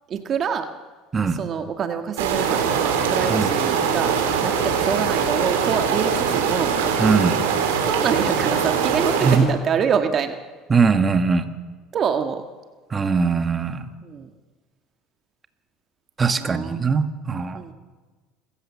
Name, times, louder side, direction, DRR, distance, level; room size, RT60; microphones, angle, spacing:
voice 1, 0.1-0.7 1.4-4.1 4.4-6.7 7.9-10.3 11.9-12.4 14.0-14.3 16.4-16.8 17.5-17.7, right 7 dB, 45° right, 6 dB, 1.6 m, -26 dB
sound 1, 2.2-9.4, right 6 dB, 85° right, 4.2 m, -22 dB
voice 2, 7.0-7.4 9.2-9.5 10.7-11.5 12.9-13.9 16.2-17.6, right 5 dB, 25° right, 8 dB, 1.8 m, -20 dB
27.0 x 15.0 x 7.5 m, 1.4 s
hypercardioid pair, 85°, 0 cm